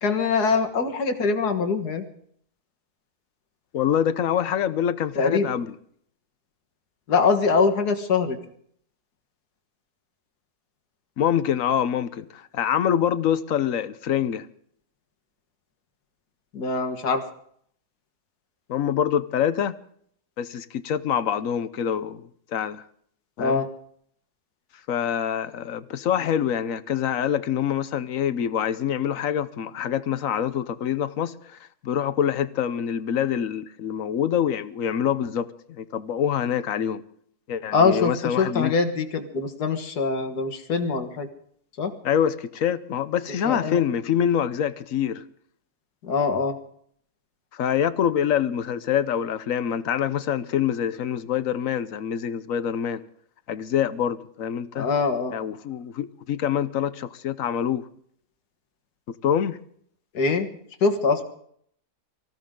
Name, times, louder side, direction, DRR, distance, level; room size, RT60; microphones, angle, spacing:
voice 1, 0.0-2.0 5.2-5.5 7.1-8.4 16.5-17.2 23.4-23.7 37.7-41.3 41.8-41.9 43.5-43.8 46.0-46.6 54.8-55.3 60.1-60.5 60.8-61.2, left 4 dB, 85° left, 2.1 m, -23 dB
voice 2, 3.7-5.7 11.2-14.5 18.7-19.7 20.4-22.8 23.4-23.6 24.9-31.6 31.8-35.5 35.8-37.0 37.5-38.7 42.0-45.2 47.5-53.0 53.5-54.9 55.3-57.9 59.2-59.6, left 9 dB, 60° left, 1.1 m, -25 dB
24.5 x 15.5 x 3.8 m
omnidirectional pair, 1.6 m